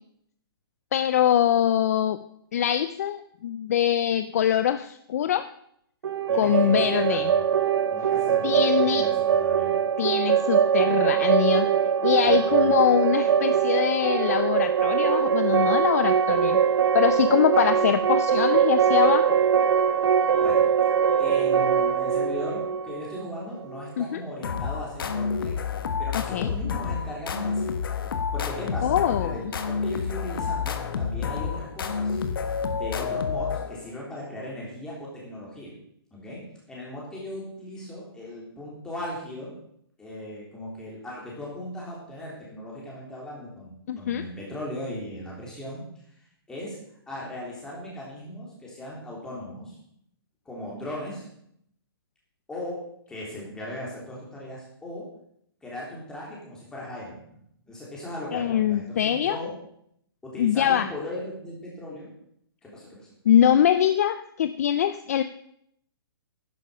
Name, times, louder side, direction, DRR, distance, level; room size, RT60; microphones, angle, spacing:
voice 1, 0.9-2.2 2.5-5.5 6.3-7.3 8.4-9.1 10.0-11.7 12.0-16.6 16.9-19.4 24.0-24.2 26.1-26.5 28.8-29.4 43.9-44.2 58.3-59.4 60.4-60.9 63.3-65.2, left 10 dB, 40° left, 12 dB, 0.4 m, -23 dB
sound 1, 6.0-23.8, right 8 dB, 80° right, 0.7 m, -22 dB
voice 2, 6.3-7.4 7.9-9.7 12.1-13.0 20.4-20.6 21.2-25.6 26.0-27.7 28.3-32.3 32.7-35.7 36.1-36.4 36.7-39.5 40.0-45.8 46.5-46.8 47.1-49.8 50.4-51.3 52.5-52.8 53.1-55.0 55.6-59.5 60.2-62.1 62.6-63.1, left 1 dB, 5° left, -5 dB, 3.5 m, -37 dB
sound 2, 24.4-33.9, left 6 dB, 60° left, 1.4 m, -29 dB
11.0 x 10.5 x 5.6 m, 0.72 s
hypercardioid pair, 165°, 13 cm